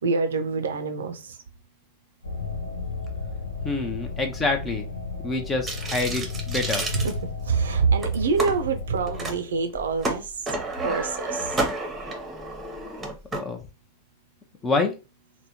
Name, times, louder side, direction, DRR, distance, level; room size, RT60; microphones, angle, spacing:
voice 1, 0.0-1.4 6.9-10.4 10.7-11.6, right 5 dB, 65° right, 0.5 m, -26 dB
sound 1, 2.2-9.4, left 4 dB, 80° left, 0.5 m, -34 dB
voice 2, 3.6-4.9 5.2-6.8 13.3-13.6 14.6-14.9, left 3 dB, 20° left, 0.6 m, -26 dB
sound 2, 5.7-7.6 8.0-8.5 9.1-9.3 9.7-13.4, right 2 dB, 15° right, 0.8 m, -31 dB
3.3 x 2.1 x 2.9 m
figure-of-eight pair, 90°, 0 cm